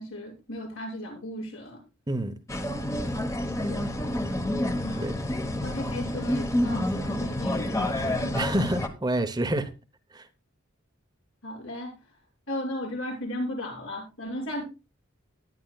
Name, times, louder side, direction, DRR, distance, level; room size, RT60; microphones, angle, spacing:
voice 1, 0.0-1.8 3.7-4.1 4.8-5.1 5.6-8.4 11.4-11.9 12.5-14.6, equal, 80° left, 6.2 m, -35 dB
sound 1, 2.5-8.9, left 1 dB, 15° left, 1.1 m, -28 dB
voice 2, 8.3-9.7 10.1-10.3, right 1 dB, 20° right, 0.8 m, -27 dB
18.5 x 10.0 x 2.3 m
head